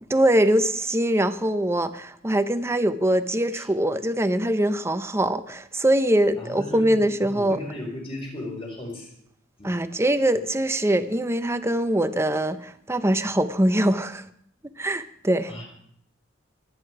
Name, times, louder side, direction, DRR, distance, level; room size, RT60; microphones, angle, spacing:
voice 1, 0.1-7.6 9.6-14.2 14.8-15.5, right 1 dB, 15° right, 0.7 m, -23 dB
voice 2, 6.4-9.1 9.6-9.7 15.5-15.6, left 1 dB, 30° left, 5.2 m, -36 dB
23.5 x 9.7 x 4.9 m
head